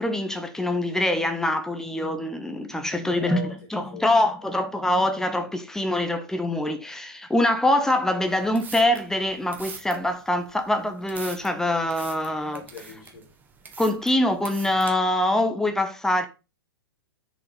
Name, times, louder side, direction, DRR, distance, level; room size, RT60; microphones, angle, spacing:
voice 1, 0.0-12.6 13.8-16.3, left 1 dB, 5° left, 0.9 m, -24 dB
voice 2, 2.9-3.5 3.9-4.1 4.4-4.5 4.8-4.9 12.5-13.3, left 3 dB, 45° left, 5.3 m, -40 dB
sound 1, 8.3-14.9, right 5 dB, 15° right, 1.5 m, -43 dB
8.1 x 6.7 x 4.1 m
figure-of-eight pair, 105°, 13 cm